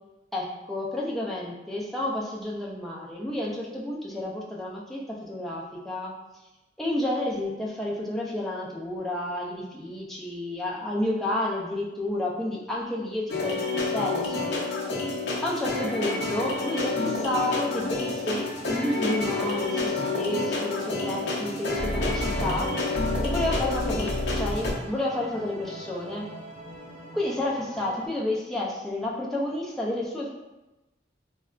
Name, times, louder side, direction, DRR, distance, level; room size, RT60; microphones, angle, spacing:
voice 1, 0.3-6.1 6.8-14.5 15.4-22.7 23.2-26.3 27.1-30.3, left 1 dB, ahead, -4 dB, 0.4 m, -30 dB
sound 1, 13.3-24.7, left 2 dB, 65° left, 0.6 m, -28 dB
sound 2, 17.5-28.1, right 1 dB, 45° right, 1.3 m, -43 dB
3.8 x 2.2 x 2.4 m, 1.0 s
head